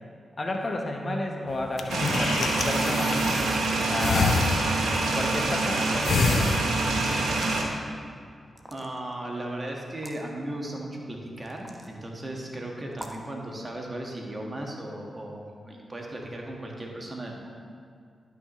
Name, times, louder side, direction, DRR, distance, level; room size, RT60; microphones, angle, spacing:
voice 1, 0.4-4.4 5.1-6.6, left 1 dB, 40° left, 2 dB, 1.0 m, -32 dB
sound 1, 1.5-3.7 4.0-5.0 5.4-5.7 6.0-7.0, left 4 dB, 75° left, 0.5 m, -28 dB
sound 2, 1.9-7.6, right 2 dB, 85° right, 1.0 m, -26 dB
sound 3, 7.4-7.7 8.5-9.1 9.9-10.2 11.5-11.9 12.9-13.3, right 1 dB, 10° right, 1.1 m, -44 dB
voice 2, 8.7-17.5, right 1 dB, 35° right, 0 dB, 1.6 m, -36 dB
12.0 x 5.7 x 3.1 m, 2.1 s
supercardioid pair, 40°, 0 cm